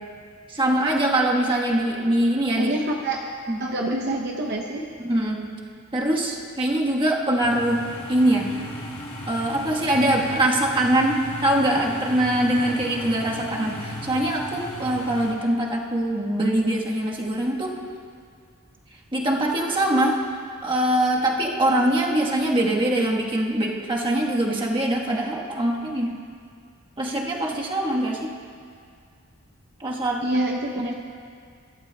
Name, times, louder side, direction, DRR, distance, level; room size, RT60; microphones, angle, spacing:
voice 1, 0.5-2.7 3.5-3.6 5.0-5.5 5.9-7.8 8.1-8.6 9.3-17.7 19.1-20.2 20.6-26.1 27.0-28.3 29.8-30.2 30.8-30.9, right 1 dB, 25° right, -2 dB, 1.3 m, -23 dB
voice 2, 2.6-3.3 3.6-4.9 30.2-30.9, right 1 dB, 50° right, 1 dB, 0.7 m, -26 dB
sound 1, 7.4-15.3, left 1 dB, 30° left, 2.0 m, -36 dB
23.5 x 12.0 x 2.3 m, 2.2 s
head